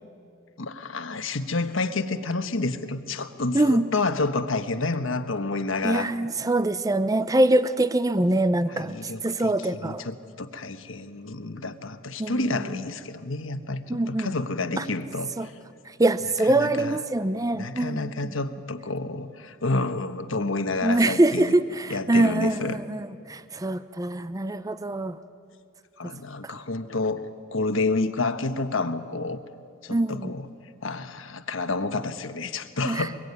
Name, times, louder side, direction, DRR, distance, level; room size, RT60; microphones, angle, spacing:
voice 1, 0.6-6.1 8.7-9.5 9.8-15.5 16.5-17.0 17.5-21.5 21.9-22.8 26.0-29.4 29.8-30.5 30.8-33.2, left 3 dB, 70° left, 9 dB, 1.3 m, -29 dB
voice 2, 3.5-3.9 5.8-10.0 12.2-12.6 13.9-14.3 14.8-14.9 15.4-15.5 15.9-18.1 20.8-25.2 26.4-26.5 29.9-30.3 32.8-33.1, right 1 dB, 15° right, 13 dB, 0.6 m, -24 dB
24.0 x 22.0 x 9.6 m, 2.4 s
head